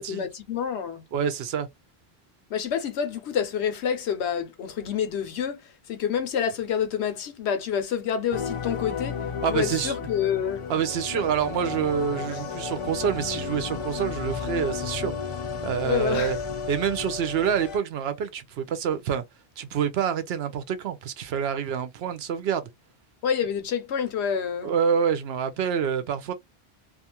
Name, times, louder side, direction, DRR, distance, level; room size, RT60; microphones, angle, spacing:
voice 1, 0.0-1.0 2.5-5.6 5.9-9.2 9.5-10.6 15.8-16.4 23.2-24.7, left 8 dB, 85° left, 1.0 m, -28 dB
voice 2, 1.1-1.7 9.4-9.9 10.7-15.1 15.6-16.4 16.7-19.2 19.6-22.7 24.6-26.3, right 7 dB, 75° right, 0.8 m, -27 dB
sound 1, 8.3-17.8, left 6 dB, 45° left, 0.4 m, -33 dB
2.5 x 2.4 x 2.8 m
omnidirectional pair, 1.1 m